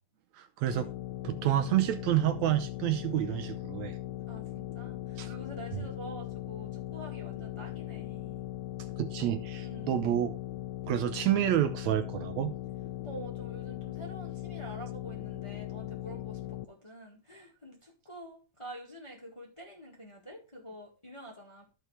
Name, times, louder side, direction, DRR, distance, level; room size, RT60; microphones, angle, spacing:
voice 1, 0.3-0.9 1.2-4.0 5.2-5.4 9.0-10.4 10.9-12.5, right 12 dB, 80° right, 1.6 m, -29 dB
sound 1, 0.7-16.7, left 14 dB, 80° left, 1.9 m, -39 dB
voice 2, 4.3-8.4 9.5-10.0 13.0-21.7, right 1 dB, 25° left, 0.6 m, -47 dB
14.0 x 4.7 x 3.2 m
omnidirectional pair, 3.8 m